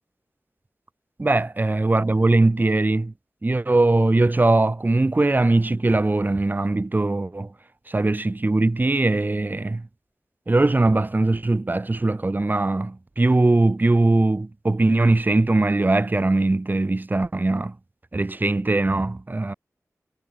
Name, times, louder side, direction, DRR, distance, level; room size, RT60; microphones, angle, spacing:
voice 1, 1.2-3.1 3.4-7.5 7.9-9.9 10.5-17.7 18.1-19.5, right 2 dB, 30° right, 5.0 m, -21 dB
wide cardioid pair, 95°, 6 cm